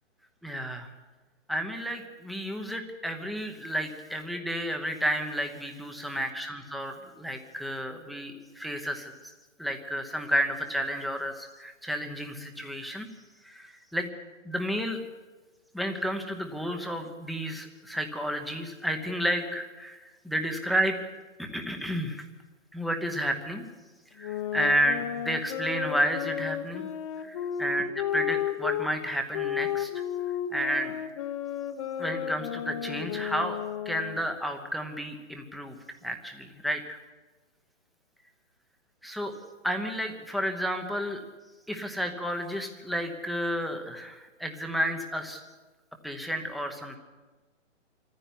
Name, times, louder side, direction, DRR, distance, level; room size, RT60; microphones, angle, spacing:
voice 1, 0.4-0.9 1.5-9.1 9.6-13.1 13.4-14.1 14.4-15.0 15.7-21.0 21.4-22.2 22.7-23.7 24.2-26.9 27.2-27.9 28.1-29.9 30.5-31.0 32.0-33.6 33.8-35.8 36.0-37.0 39.0-39.3 39.6-41.2 41.7-45.4 46.0-47.0, equal, ahead, 4 dB, 0.9 m, -31 dB
sound 1, 24.2-28.9 29.3-34.3, left 10 dB, 25° left, 0.9 m, -33 dB
23.5 x 15.0 x 10.0 m, 1.2 s
hypercardioid pair, 160°, 38 cm